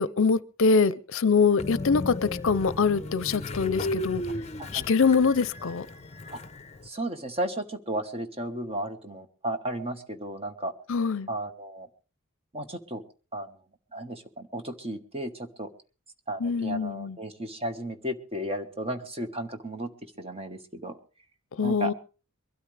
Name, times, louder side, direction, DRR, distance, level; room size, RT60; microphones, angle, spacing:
voice 1, 0.0-4.2 4.7-5.9 10.9-11.3 16.4-17.2 21.6-21.9, left 5 dB, 65° left, 18 dB, 0.6 m, -24 dB
Train, 1.6-6.9, left 2 dB, 30° left, 0.7 m, -35 dB
voice 2, 6.8-10.7 11.3-11.9 12.5-13.0 13.3-13.5 13.9-15.7 16.3-19.9 20.2-21.0 21.6-21.9, right 1 dB, 30° right, 7 dB, 1.4 m, -34 dB
23.0 x 12.5 x 3.3 m, 0.36 s
head